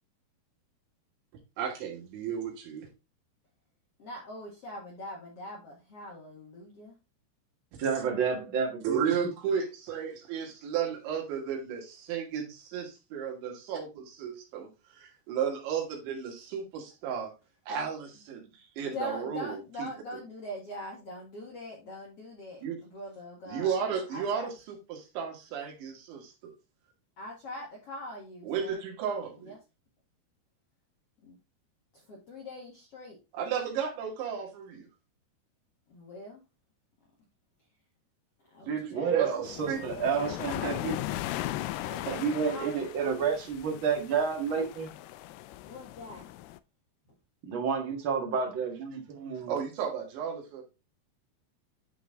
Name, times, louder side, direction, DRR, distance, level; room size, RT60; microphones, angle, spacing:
voice 1, 1.6-2.9 8.8-17.3 17.7-20.2 22.6-22.8 23.5-26.5 28.4-29.5 33.3-34.9 38.6-39.8 49.5-50.6, right 7 dB, 85° right, 4.4 m, -34 dB
voice 2, 4.0-6.9 18.9-23.7 24.1-24.5 27.2-28.8 29.4-29.6 31.2-31.4 31.9-33.2 35.9-36.4 38.5-39.2 41.8-42.8 45.6-46.3, left 1 dB, 60° left, 1.6 m, -43 dB
voice 3, 7.8-9.0 38.9-41.0 42.1-44.9 47.4-49.6, right 6 dB, 50° right, 1.6 m, -30 dB
sound 1, 39.4-46.6, left 15 dB, 85° left, 2.3 m, -38 dB
10.5 x 4.1 x 3.6 m
omnidirectional pair, 5.1 m